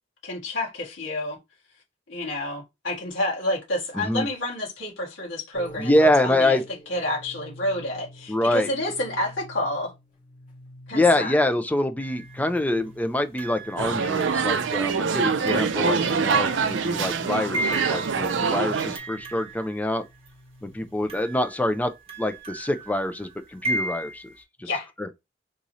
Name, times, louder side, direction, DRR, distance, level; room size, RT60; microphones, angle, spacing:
voice 1, 0.2-1.4 2.1-6.6 6.9-9.9 10.9-11.4 24.6-24.9, left 1 dB, 80° left, 1.7 m, -29 dB
voice 2, 3.9-4.3 5.8-6.6 8.3-8.7 10.9-20.1 20.6-21.9 22.2-24.2 24.6-24.7 25.0-25.2, left 1 dB, 10° left, 0.4 m, -25 dB
sound 1, 5.5-21.4, equal, 45° left, 1.9 m, -48 dB
sound 2, 12.0-12.6 13.4-20.3 21.1-24.4, right 1 dB, 35° right, 1.0 m, -36 dB
sound 3, 13.8-19.0, right 5 dB, 70° right, 0.5 m, -24 dB
3.6 x 2.8 x 3.0 m
head